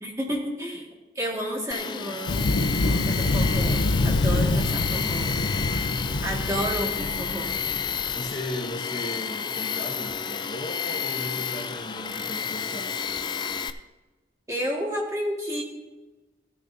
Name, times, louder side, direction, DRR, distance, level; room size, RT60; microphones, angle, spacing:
voice 1, 0.0-0.9 1.2-5.3 6.2-7.5 14.5-15.6, equal, 15° right, -2 dB, 1.8 m, -31 dB
Tools, 1.7-13.7, left 6 dB, 25° left, 0.3 m, -31 dB
Thunder, 2.3-8.1, left 2 dB, 80° left, 0.6 m, -26 dB
voice 2, 8.1-12.9, left 1 dB, 40° left, 2 dB, 0.9 m, -36 dB
15.0 x 10.0 x 2.7 m, 1.2 s
head